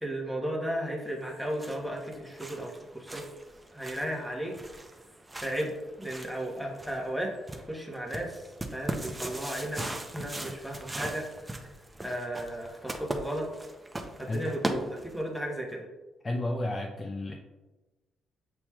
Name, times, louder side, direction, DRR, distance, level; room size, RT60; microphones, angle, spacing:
voice 1, 0.0-3.2 3.7-4.5 5.4-5.7 6.0-7.3 7.7-8.4 8.7-9.8 10.1-11.6 12.0-13.5 14.2-15.9, right 1 dB, ahead, -1 dB, 1.0 m, -34 dB
sound 1, 1.2-15.4, right 1 dB, 15° right, 0.5 m, -40 dB
voice 2, 16.2-17.4, left 1 dB, 30° left, 1 dB, 0.5 m, -32 dB
7.0 x 2.9 x 2.3 m, 1.2 s
cardioid pair, 90°, 0 cm